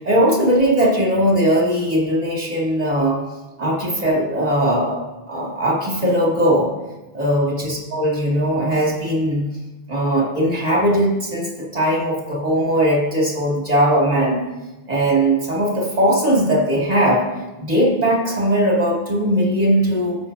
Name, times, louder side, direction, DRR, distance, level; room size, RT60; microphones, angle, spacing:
voice 1, 0.0-3.2 3.6-6.7 7.1-9.5 9.9-14.4 14.9-17.2 17.6-20.2, equal, 40° right, -3 dB, 2.3 m, -19 dB
15.0 x 5.9 x 2.7 m, 1.1 s
omnidirectional pair, 1.0 m